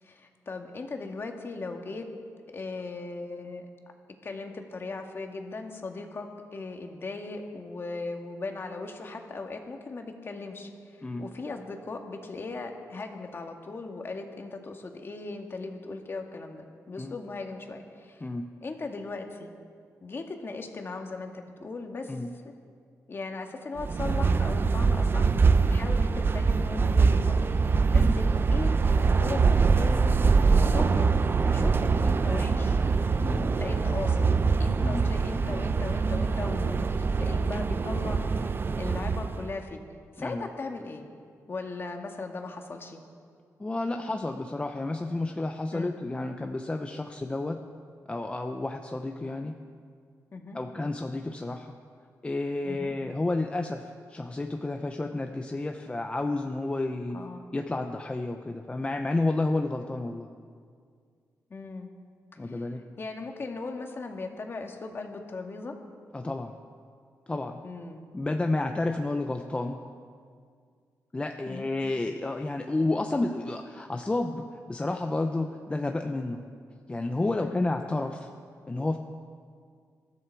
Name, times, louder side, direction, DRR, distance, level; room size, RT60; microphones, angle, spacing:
voice 1, 0.0-2.1 2.5-3.7 4.2-18.3 18.6-19.5 20.0-22.1 22.4-22.5 23.1-25.3 25.7-27.5 27.9-30.1 30.5-31.1 31.4-32.8 33.6-34.3 34.6-39.8 40.2-41.1 41.5-43.0 45.7-45.9 50.3-50.6 52.6-52.9 57.1-57.4 61.5-61.9 62.4-62.7 63.0-65.7 67.6-68.0 71.4-71.7 77.4-77.7, left 3 dB, 40° left, 3 dB, 1.7 m, -38 dB
sound 1, 23.8-39.5, right 4 dB, 35° right, 0.5 m, -24 dB
voice 2, 33.2-33.5 34.8-35.1 40.2-40.5 43.6-47.6 48.1-49.6 50.5-51.7 52.2-57.2 57.5-60.3 62.4-62.8 66.1-66.5 67.3-67.6 68.1-69.8 71.1-76.4 76.9-78.3 78.7-79.0, left 2 dB, 20° left, 4 dB, 0.7 m, -31 dB
22.5 x 13.5 x 4.6 m, 2.1 s
cardioid pair, 110°, 6 cm